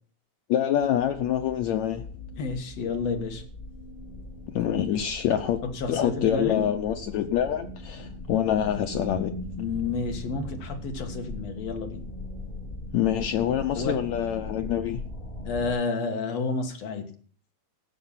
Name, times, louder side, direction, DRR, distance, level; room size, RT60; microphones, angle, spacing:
voice 1, 0.5-2.0 4.5-5.6 5.9-9.3 12.9-15.0, left 10 dB, 90° left, 6 dB, 1.6 m, -26 dB
sound 1, 0.8-15.7, left 2 dB, 15° left, 2.7 m, -40 dB
voice 2, 2.4-3.4 5.7-6.7 9.6-12.0 13.7-14.0 15.4-17.1, left 4 dB, 55° left, 5 dB, 2.5 m, -30 dB
17.0 x 6.7 x 5.7 m, 0.43 s
omnidirectional pair, 4.1 m